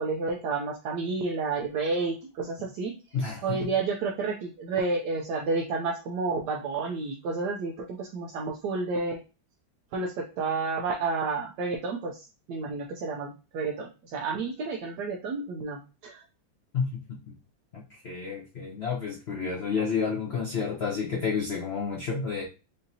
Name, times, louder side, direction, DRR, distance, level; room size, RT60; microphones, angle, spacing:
voice 1, 0.0-3.0 3.4-9.2 9.9-16.2, right 4 dB, 70° right, 0 dB, 1.0 m, -30 dB
voice 2, 3.1-3.6 16.7-17.0 17.7-22.4, left 5 dB, 85° left, -2 dB, 0.5 m, -30 dB
5.1 x 2.8 x 2.7 m, 0.32 s
omnidirectional pair, 2.2 m